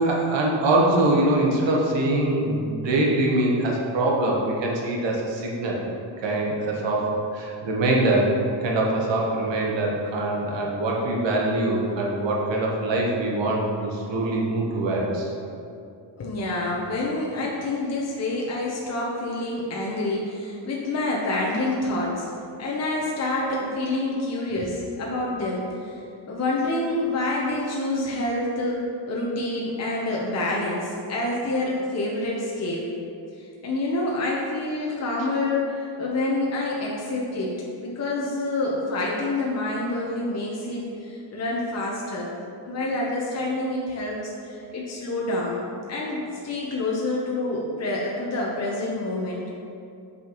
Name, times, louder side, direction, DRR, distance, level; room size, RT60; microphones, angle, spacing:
voice 1, 0.0-5.8 6.2-8.3 8.6-15.3, right 2 dB, 90° right, -2 dB, 1.2 m, -23 dB
voice 2, 16.2-22.3 22.6-32.9 33.3-42.3 42.6-45.6 45.9-49.5, left 2 dB, 35° left, -3 dB, 0.8 m, -27 dB
6.2 x 5.5 x 3.0 m, 2.6 s
cardioid pair, 110°, 43 cm